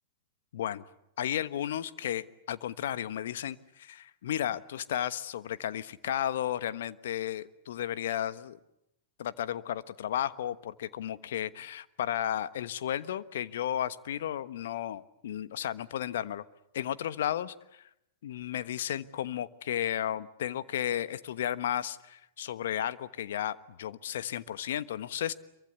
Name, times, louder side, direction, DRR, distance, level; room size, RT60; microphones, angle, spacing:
voice 1, 0.5-0.8 1.2-8.6 9.2-16.4 16.7-17.9 18.2-25.3, left 11 dB, 65° left, 14 dB, 1.2 m, -33 dB
27.0 x 23.5 x 8.3 m, 0.83 s
hypercardioid pair, 105°, 0 cm